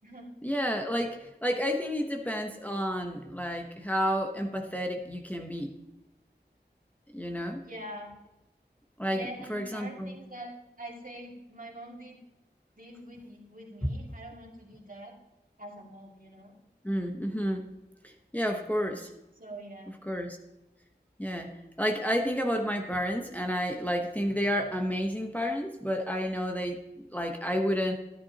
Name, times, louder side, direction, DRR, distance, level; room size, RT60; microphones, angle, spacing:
voice 1, 0.4-5.7 7.1-7.6 9.0-10.1 16.8-17.7 18.0-19.1 20.1-20.4 21.2-21.5 21.8-27.9, equal, 10° left, 3 dB, 0.9 m, -30 dB
voice 2, 7.6-8.1 9.1-12.2 12.8-15.2 15.6-16.6 19.4-20.0, right 1 dB, 50° right, -1 dB, 2.2 m, -44 dB
12.5 x 11.0 x 2.8 m, 0.98 s
wide cardioid pair, 45°, 18 cm